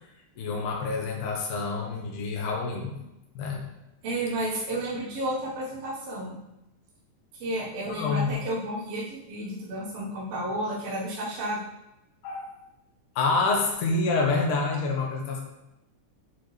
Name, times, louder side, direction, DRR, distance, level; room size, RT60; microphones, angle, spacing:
voice 1, 0.4-3.0 3.4-3.6 7.9-8.4 12.2-12.5 13.2-15.4, left 3 dB, 85° left, 0 dB, 2.5 m, -27 dB
voice 2, 4.0-6.4 7.4-11.7, right 1 dB, 60° right, -7 dB, 2.2 m, -32 dB
8.6 x 4.4 x 3.2 m, 0.90 s
omnidirectional pair, 3.4 m